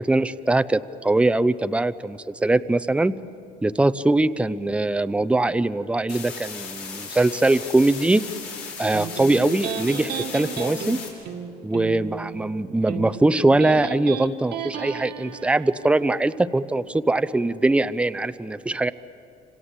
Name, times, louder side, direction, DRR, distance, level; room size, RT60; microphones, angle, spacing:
voice 1, 0.0-3.1 3.6-8.2 8.8-11.0 11.6-18.9, right 2 dB, 5° right, 13 dB, 0.6 m, -22 dB
sound 1, 6.1-11.1, left 5 dB, 90° left, 5.6 m, -36 dB
Electric guitar, 8.9-15.9, right 7 dB, 75° right, 2.0 m, -34 dB
27.5 x 26.0 x 8.1 m, 2.8 s
cardioid pair, 110°, 17 cm